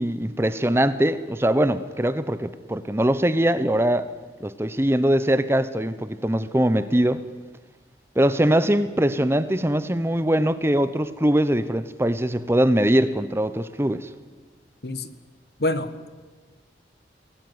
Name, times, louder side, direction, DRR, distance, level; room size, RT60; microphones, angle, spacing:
voice 1, 0.0-4.1 4.4-7.2 8.2-14.1, right 1 dB, 15° right, 0.8 m, -22 dB
voice 2, 14.8-15.1 15.6-16.1, left 2 dB, 65° left, 1.5 m, -27 dB
25.0 x 18.5 x 9.6 m
head